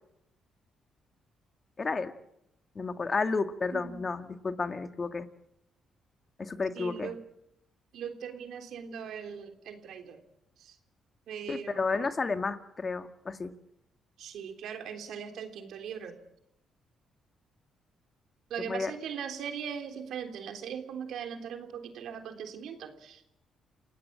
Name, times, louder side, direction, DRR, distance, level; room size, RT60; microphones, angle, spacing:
voice 1, 1.8-2.1 2.8-5.3 6.4-7.1 11.5-13.5 18.6-18.9, left 4 dB, 35° left, 9 dB, 1.8 m, -32 dB
voice 2, 3.7-4.1 6.7-7.2 7.9-10.2 10.6-10.8 11.3-12.1 14.2-16.2 18.5-23.3, right 7 dB, 75° right, 6 dB, 3.4 m, -40 dB
29.0 x 17.0 x 8.7 m, 0.82 s
cardioid pair, 90°, 0 cm